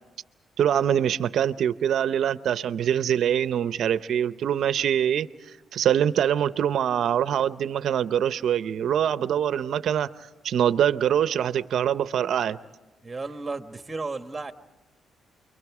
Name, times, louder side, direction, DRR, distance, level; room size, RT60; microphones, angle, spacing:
voice 1, 0.6-5.3 5.7-10.1 10.4-12.6, right 9 dB, 65° right, 0.7 m, -24 dB
voice 2, 13.0-14.5, right 3 dB, 20° right, 1.3 m, -33 dB
29.0 x 23.0 x 4.8 m
cardioid pair, 90°, 0 cm